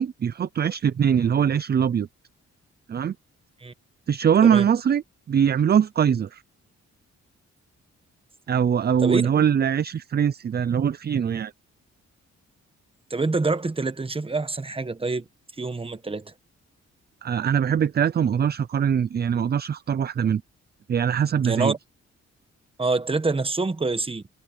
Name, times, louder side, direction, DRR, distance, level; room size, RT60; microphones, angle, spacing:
voice 1, 0.0-2.1 2.9-3.2 4.1-5.0 5.3-6.4 8.5-11.5 17.2-20.4 20.9-21.7, right 8 dB, 35° right, 0.4 m, -22 dB
voice 2, 9.0-9.4 13.1-15.2 15.6-16.3 21.4-21.7 22.8-24.2, right 3 dB, 20° right, 1.2 m, -26 dB
cardioid pair, 120°, 29 cm